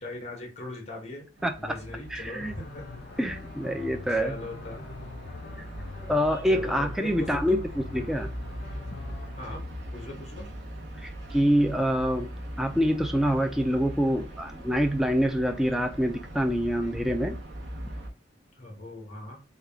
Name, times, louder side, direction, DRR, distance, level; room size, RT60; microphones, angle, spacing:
voice 1, 0.0-1.3 1.6-2.9 4.1-4.8 6.5-7.6 7.9-8.1 9.4-10.5 18.6-19.4, left 2 dB, 35° left, 1.0 m, -40 dB
voice 2, 1.4-1.8 2.1-2.6 3.2-4.4 6.0-7.6 7.9-8.3 11.0-12.3 12.6-17.4, equal, 5° right, 0.3 m, -26 dB
sound 1, 1.4-18.1, equal, 85° right, 0.9 m, -40 dB
sound 2, 2.4-9.5, left 4 dB, 60° left, 0.5 m, -44 dB
3.5 x 2.3 x 3.4 m
head